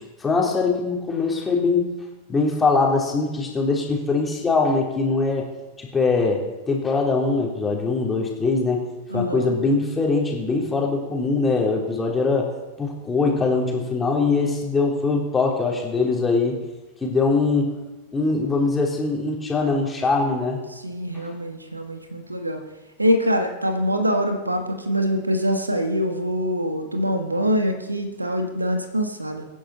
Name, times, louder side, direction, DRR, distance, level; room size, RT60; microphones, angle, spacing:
voice 1, 0.2-1.9 2.3-5.5 5.8-8.8 9.1-12.5 12.8-16.6 17.0-17.7 18.1-20.6, left 3 dB, 15° left, -1 dB, 3.6 m, -22 dB
voice 2, 9.1-9.6 20.7-22.6 23.0-29.5, equal, 85° right, 6 dB, 1.6 m, -24 dB
24.0 x 10.0 x 4.3 m, 1.1 s
figure-of-eight pair, 90°, 0 cm